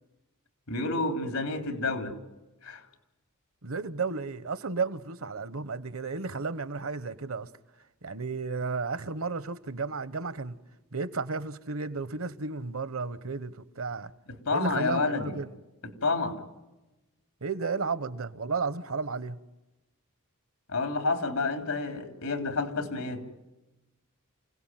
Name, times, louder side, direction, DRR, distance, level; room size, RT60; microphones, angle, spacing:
voice 1, 0.7-2.1 2.6-2.8 14.3-15.3 16.0-16.4 20.7-23.3, left 3 dB, 90° left, 3.6 m, -29 dB
voice 2, 3.6-7.5 8.0-10.6 10.9-14.1 14.5-15.5 17.4-19.4, right 4 dB, 70° right, 1.1 m, -33 dB
28.5 x 17.5 x 9.2 m
head